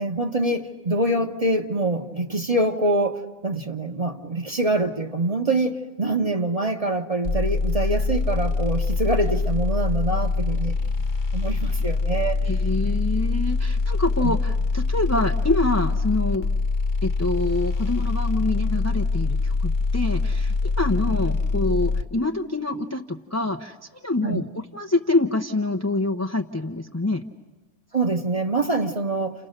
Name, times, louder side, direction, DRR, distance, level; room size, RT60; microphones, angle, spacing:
voice 1, 0.0-10.8 11.3-12.5 14.2-14.3 24.2-24.4 27.9-29.5, right 2 dB, 25° right, 5 dB, 1.3 m, -25 dB
sound 1, 7.2-22.0, left 3 dB, 35° left, 1.2 m, -24 dB
voice 2, 12.4-16.5 17.0-23.8 24.0-24.5 24.7-27.2, left 2 dB, 15° left, 5 dB, 0.6 m, -26 dB
30.0 x 30.0 x 6.7 m, 1.2 s
omnidirectional pair, 1.5 m